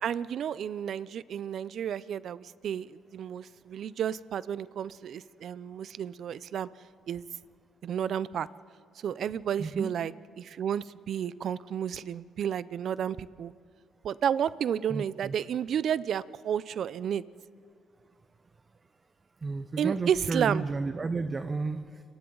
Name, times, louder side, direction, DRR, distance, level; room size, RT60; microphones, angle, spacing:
voice 1, 0.0-6.7 7.1-7.3 7.8-8.5 9.0-13.5 14.0-17.2 19.8-20.7, right 9 dB, 65° right, 18 dB, 0.5 m, -31 dB
voice 2, 14.9-15.3 19.4-21.8, right 3 dB, 30° right, 9 dB, 0.9 m, -32 dB
30.0 x 23.5 x 3.9 m, 2.3 s
cardioid pair, 90°, 0 cm